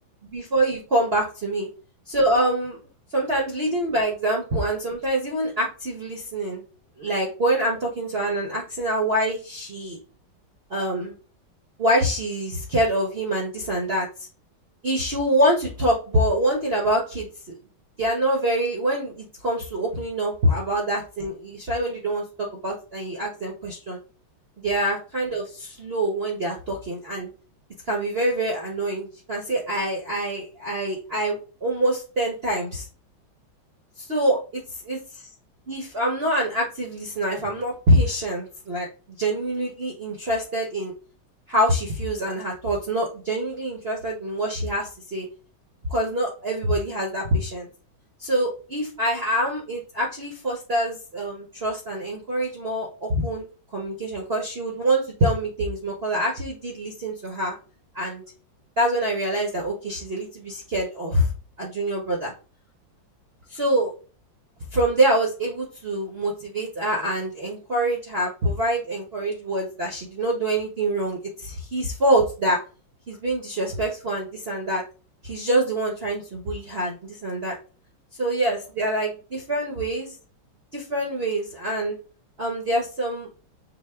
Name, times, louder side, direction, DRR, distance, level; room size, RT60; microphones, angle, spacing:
voice 1, 0.2-1.7 2.1-2.8 3.1-6.6 7.0-10.0 10.7-11.2 11.8-14.1 14.8-17.5 18.0-24.0 24.6-27.3 27.9-32.9 34.0-35.0 35.7-38.9 39.2-40.9 41.5-45.3 45.9-47.7 48.2-53.4 53.7-57.5 57.9-58.2 58.8-61.3 61.6-62.3 63.5-63.9 64.7-72.6 73.1-74.8 75.2-77.6 78.2-80.1 80.7-82.0 82.4-83.3, right 1 dB, 45° right, -2 dB, 0.8 m, -25 dB
6.0 x 2.2 x 3.3 m, 0.35 s
omnidirectional pair, 2.2 m